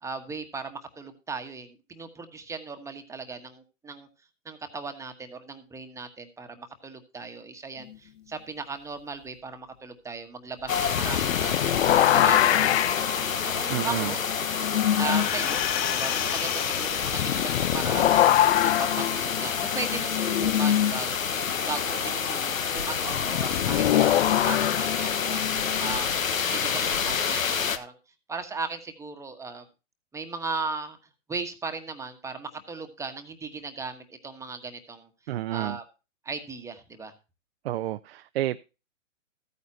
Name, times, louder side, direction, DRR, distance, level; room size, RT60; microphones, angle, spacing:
voice 1, 0.0-4.1 4.4-11.6 11.9-13.0 13.4-14.2 15.0-15.6 15.9-18.5 18.8-21.2 21.7-26.1 26.5-28.0 28.3-29.6 30.1-31.0 31.3-35.1 35.5-35.8 36.2-37.1, right 4 dB, 10° right, 1.3 m, -37 dB
sound 1, 10.7-27.8, left 7 dB, 85° left, 1.4 m, -28 dB
sound 2, 10.8-15.3 15.6-15.7 17.0-21.0 23.1-26.0, left 12 dB, 55° left, 0.6 m, -25 dB
voice 2, 13.7-14.1 35.3-35.8 37.6-38.6, right 13 dB, 50° right, 0.6 m, -30 dB
sound 3, 14.9-18.3 18.8-18.9, left 10 dB, 30° left, 3.6 m, -32 dB
14.5 x 9.5 x 2.8 m
hypercardioid pair, 135°, 39 cm